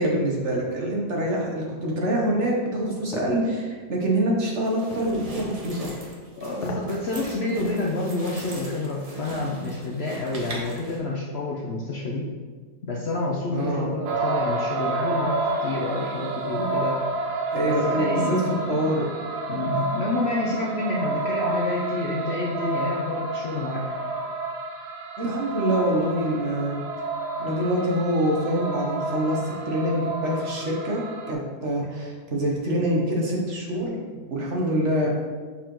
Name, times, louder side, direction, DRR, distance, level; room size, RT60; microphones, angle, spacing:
voice 1, 0.0-5.9 13.5-13.9 17.5-18.4 18.7-19.1 25.2-26.8 27.4-35.1, right 1 dB, 50° right, -1 dB, 1.2 m, -25 dB
sound 1, 3.1-3.4 4.9-5.1 6.5-6.9 7.3-7.4, left 2 dB, 80° left, 1.4 m, -35 dB
sound 2, 4.6-11.0, right 1 dB, 30° right, 0.8 m, -39 dB
voice 2, 6.4-12.3 12.8-17.0 17.6-18.4 18.7-18.8 19.5-23.8, left 2 dB, 55° left, -3 dB, 0.7 m, -28 dB
sound 3, 14.1-31.3, right 3 dB, 80° right, 1.3 m, -29 dB
6.7 x 5.6 x 3.0 m, 1.5 s
omnidirectional pair, 1.7 m